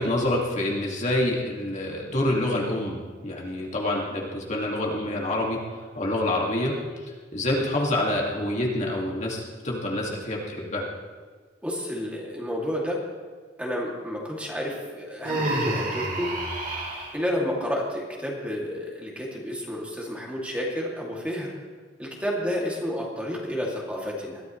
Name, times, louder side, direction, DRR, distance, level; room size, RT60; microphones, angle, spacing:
voice 1, 0.0-5.6 6.0-6.7 7.3-10.9, left 1 dB, 40° left, -2 dB, 2.1 m, -27 dB
voice 2, 11.6-13.0 13.6-16.3 17.1-21.5 22.0-24.4, equal, 5° right, -3 dB, 2.4 m, -30 dB
Human voice, 15.2-17.1, right 1 dB, 50° right, 3.2 m, -28 dB
21.5 x 13.5 x 3.2 m, 1.5 s
head